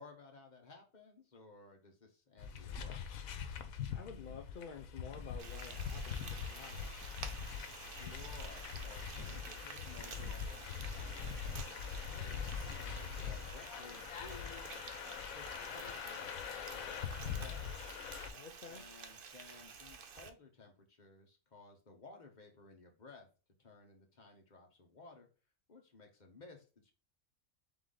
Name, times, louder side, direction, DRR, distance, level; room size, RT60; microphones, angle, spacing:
voice 1, 0.0-3.2 7.7-14.7 15.3-17.8 18.7-23.3 23.6-25.3 25.7-26.9, left 3 dB, 35° left, 2 dB, 1.2 m, -57 dB
sound 1, 2.4-18.3, left 7 dB, 90° left, 1.1 m, -43 dB
voice 2, 3.9-6.9 18.3-18.8, left 5 dB, 50° left, 3 dB, 0.6 m, -50 dB
Frying (food), 5.4-20.3, right 6 dB, 50° right, 0.7 m, -51 dB
3.9 x 3.5 x 3.7 m, 0.34 s
omnidirectional pair, 1.4 m